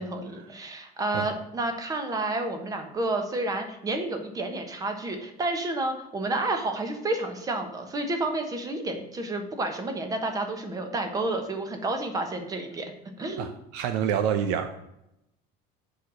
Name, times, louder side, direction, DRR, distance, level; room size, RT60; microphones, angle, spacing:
voice 1, 0.0-12.9 13.2-13.5, right 2 dB, 20° right, 6 dB, 1.2 m, -30 dB
voice 2, 13.4-14.8, right 8 dB, 70° right, 8 dB, 0.7 m, -27 dB
6.7 x 4.9 x 6.2 m, 0.84 s
cardioid pair, 155°, 18 cm